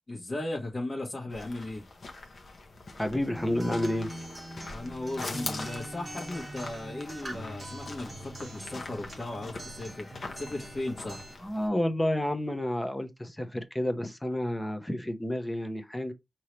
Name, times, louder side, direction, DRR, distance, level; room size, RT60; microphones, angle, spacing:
voice 1, 0.1-1.8 4.7-11.2, left 2 dB, 35° left, 1.4 m, -36 dB
sound 1, 1.3-11.7, left 3 dB, 60° left, 1.2 m, -43 dB
voice 2, 3.0-4.1 11.4-16.1, left 1 dB, 10° left, 0.9 m, -30 dB
Acoustic guitar, 3.4-11.3, right 1 dB, 30° right, 1.5 m, -43 dB
5.5 x 2.9 x 3.2 m
wide cardioid pair, 115°, 0 cm